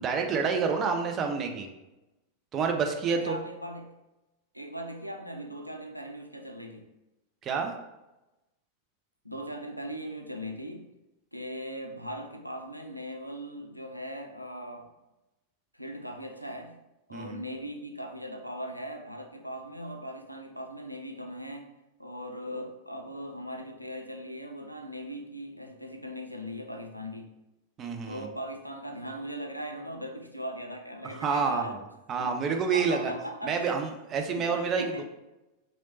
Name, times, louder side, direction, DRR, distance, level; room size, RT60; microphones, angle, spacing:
voice 1, 0.0-1.7 2.5-3.4 7.4-7.7 17.1-17.4 27.8-28.3 31.0-31.8 32.1-33.1 33.4-35.0, right 5 dB, 30° right, 4 dB, 0.4 m, -28 dB
voice 2, 3.1-3.9 4.5-6.9 9.2-10.9 11.3-14.9 15.7-16.8 17.1-21.7 22.0-27.3 28.1-31.8 32.2-33.8 34.4-35.0, equal, 90° left, 4 dB, 0.3 m, -39 dB
3.0 x 2.9 x 2.7 m, 0.97 s
figure-of-eight pair, 90°, 0 cm